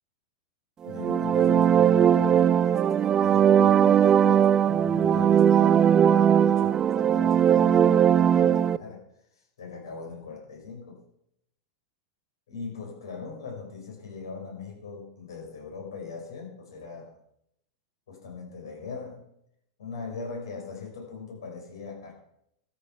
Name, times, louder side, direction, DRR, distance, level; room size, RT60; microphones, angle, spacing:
voice 1, 0.8-9.0 9.3-11.0 12.5-17.1 18.1-19.3 19.8-22.1, left 4 dB, 65° left, 0 dB, 5.9 m, -40 dB
sound 1, 0.8-8.8, right 9 dB, 25° right, 0.4 m, -20 dB
13.0 x 7.2 x 6.1 m, 0.75 s
figure-of-eight pair, 90°, 2 cm